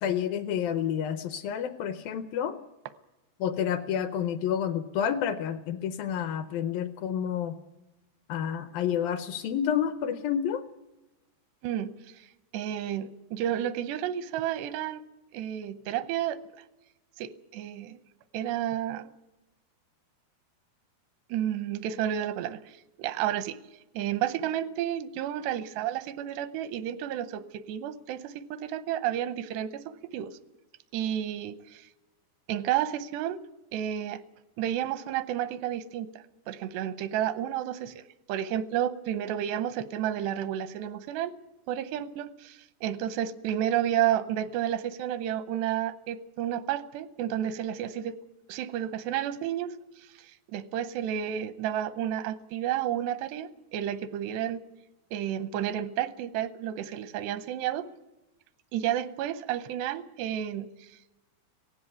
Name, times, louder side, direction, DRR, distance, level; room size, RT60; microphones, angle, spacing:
voice 1, 0.0-2.6 3.4-7.6 8.3-10.6, left 9 dB, 75° left, 11 dB, 2.3 m, -29 dB
voice 2, 11.6-12.3 12.5-15.0 15.3-16.4 17.2-18.0 18.3-19.1 21.3-23.6 23.9-30.3 30.9-31.9 32.5-33.4 33.7-34.2 34.6-36.1 36.5-38.0 38.3-41.3 41.7-48.2 48.5-49.7 50.5-54.6 55.1-57.9 58.7-60.7, right 11 dB, 90° right, 14 dB, 3.0 m, -31 dB
17.5 x 15.5 x 9.4 m, 1.0 s
omnidirectional pair, 4.7 m